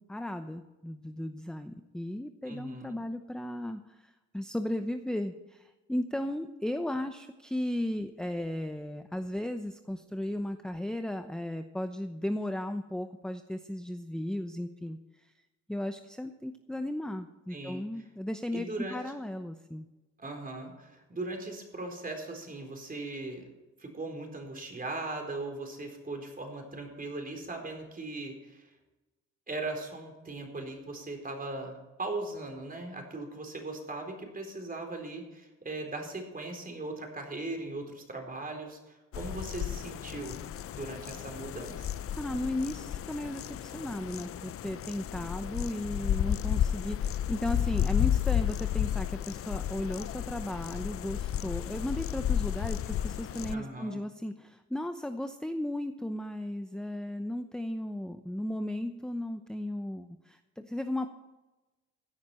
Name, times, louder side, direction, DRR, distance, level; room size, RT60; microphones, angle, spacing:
voice 1, 0.0-15.3 15.7-18.7 18.9-19.9 42.2-61.1, left 1 dB, ahead, 7 dB, 0.8 m, -35 dB
voice 2, 2.5-3.0 17.5-17.8 18.5-19.0 20.2-23.4 23.8-28.7 29.5-40.4 40.7-41.9 53.5-54.0, right 2 dB, 30° right, 3 dB, 4.3 m, -39 dB
sound 1, 39.1-53.5, left 10 dB, 50° left, 0.5 m, -32 dB
16.0 x 10.0 x 4.4 m, 1.1 s
cardioid pair, 90°, 30 cm